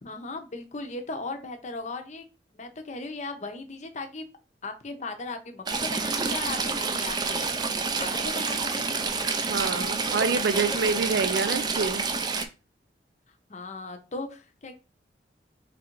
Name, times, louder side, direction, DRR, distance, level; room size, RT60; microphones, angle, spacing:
voice 1, 0.0-2.2 2.5-4.3 4.6-8.9 13.5-14.7, left 3 dB, 40° left, 6 dB, 0.7 m, -37 dB
Stream / Trickle dribble, 5.7-12.4, right 4 dB, 25° right, 0.4 m, -28 dB
voice 2, 9.5-12.0, right 4 dB, 80° right, 11 dB, 0.5 m, -27 dB
3.3 x 2.5 x 4.5 m, 0.31 s
head